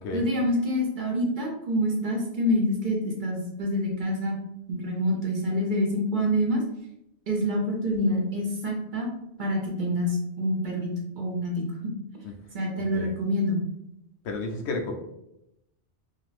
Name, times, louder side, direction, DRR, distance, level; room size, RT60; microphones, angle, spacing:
voice 1, 0.1-4.3 4.7-6.6 7.3-9.1 9.4-11.7 12.5-13.6, equal, 50° right, 0 dB, 0.7 m, -26 dB
voice 2, 14.2-14.9, left 2 dB, 80° left, 1 dB, 0.9 m, -31 dB
2.5 x 2.5 x 3.2 m, 0.84 s
omnidirectional pair, 1.1 m